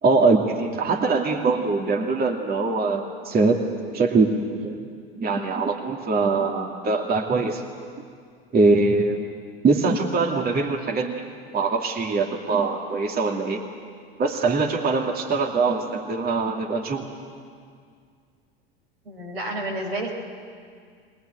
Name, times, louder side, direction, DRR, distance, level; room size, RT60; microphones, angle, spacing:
voice 1, 0.0-3.6 3.9-4.8 5.2-7.6 8.5-9.2 9.6-11.2 11.5-13.6 14.2-17.1, right 3 dB, 30° right, 2 dB, 2.6 m, -22 dB
voice 2, 19.0-20.1, right 1 dB, 90° right, 0 dB, 4.4 m, -30 dB
22.0 x 20.5 x 9.3 m, 2.1 s
hypercardioid pair, 80°, 30 cm